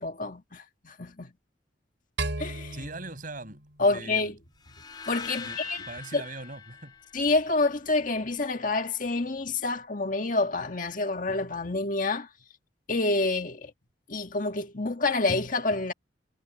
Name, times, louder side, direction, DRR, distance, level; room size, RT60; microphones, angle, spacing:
voice 1, 0.0-1.3 2.4-2.8 3.8-4.3 5.1-5.8 6.1-6.2 7.1-12.3 12.9-13.7 14.1-15.9, left 3 dB, 45° left, 1.8 m, -28 dB
sound 1, 2.2-4.6, right 2 dB, 75° right, 3.9 m, -36 dB
voice 2, 2.7-4.3 5.4-7.0, right 2 dB, 50° right, 7.0 m, -41 dB
sound 2, 4.6-7.8, left 5 dB, 25° left, 3.3 m, -42 dB
head